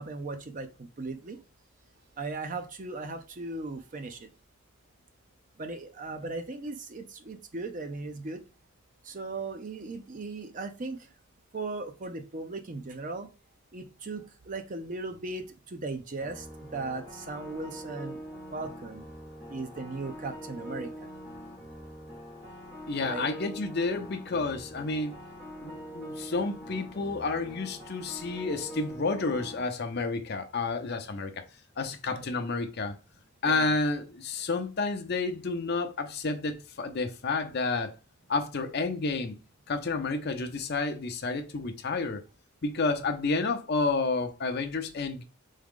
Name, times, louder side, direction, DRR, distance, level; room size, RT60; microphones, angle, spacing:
voice 1, 0.0-1.4 2.2-4.3 5.6-8.4 9.0-11.1 11.5-13.3 13.7-18.2 18.5-19.1 19.5-21.1 23.0-23.3 32.1-32.3 33.4-33.8, right 3 dB, 35° right, 0.5 m, -37 dB
sound 1, 16.2-29.6, equal, 10° right, 1.7 m, -43 dB
voice 2, 22.9-25.2 25.6-31.4 31.8-32.9 33.4-37.9 38.3-39.4 39.7-42.2 42.6-45.2, left 3 dB, 45° left, 0.6 m, -30 dB
3.8 x 3.7 x 3.6 m
head